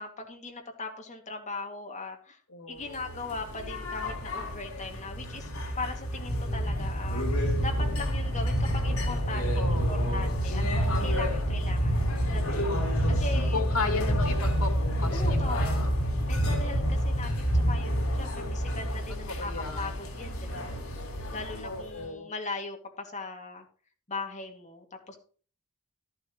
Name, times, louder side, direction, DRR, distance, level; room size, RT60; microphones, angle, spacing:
voice 1, 0.0-2.4 2.7-5.5 5.8-7.2 7.6-10.6 11.0-12.7 13.1-13.8 15.1-16.0 16.3-20.7 21.3-23.7 24.1-25.2, left 3 dB, 35° left, 3 dB, 2.3 m, -39 dB
voice 2, 2.5-3.2 9.6-10.1 12.2-12.9 13.5-15.9 19.3-19.9 21.6-22.3, left 4 dB, 90° left, 6 dB, 2.5 m, -35 dB
sound 1, 2.9-22.1, equal, 70° left, 3.7 m, -28 dB
12.5 x 11.5 x 3.1 m, 0.40 s
head